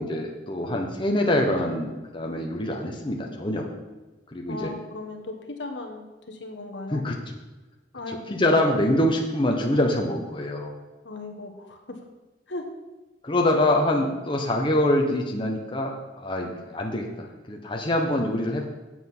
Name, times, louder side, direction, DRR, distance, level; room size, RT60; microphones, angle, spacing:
voice 1, 0.0-3.7 4.3-4.7 6.9-7.2 8.3-10.7 13.2-18.6, left 1 dB, 25° left, 1 dB, 1.3 m, -25 dB
voice 2, 4.5-7.0 7.9-8.4 11.0-12.0 12.5-12.7, left 2 dB, 70° left, 4 dB, 1.3 m, -37 dB
8.3 x 7.7 x 6.3 m, 1.2 s
head